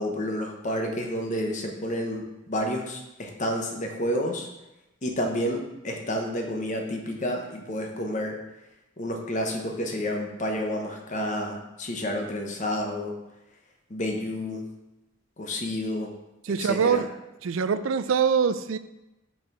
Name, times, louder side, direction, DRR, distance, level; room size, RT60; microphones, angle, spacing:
voice 1, 0.0-4.5 5.0-8.3 9.0-13.1 13.9-14.6 15.4-16.1 16.5-17.0, left 1 dB, 40° left, 2 dB, 0.9 m, -30 dB
voice 2, 16.4-17.1 17.4-18.8, right 6 dB, 80° right, 13 dB, 0.4 m, -24 dB
5.7 x 4.6 x 5.4 m, 0.97 s
head